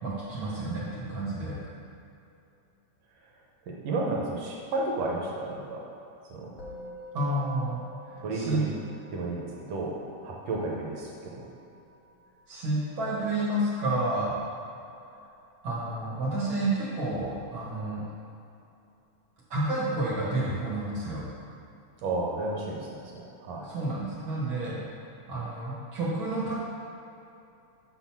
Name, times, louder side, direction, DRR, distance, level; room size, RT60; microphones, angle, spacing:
voice 1, 0.0-1.6 7.1-7.8 8.3-8.6 12.5-14.4 15.6-18.0 19.5-21.2 23.6-24.8 25.3-26.6, right 2 dB, 50° right, -7 dB, 2.0 m, -30 dB
voice 2, 3.7-5.9 6.3-6.5 8.2-8.7 9.1-11.5 22.0-23.7, right 2 dB, 65° right, -2 dB, 2.1 m, -32 dB
Musical instrument, 6.6-16.1, equal, 85° left, 0.7 m, -50 dB
7.7 x 4.2 x 5.9 m, 2.7 s
omnidirectional pair, 3.4 m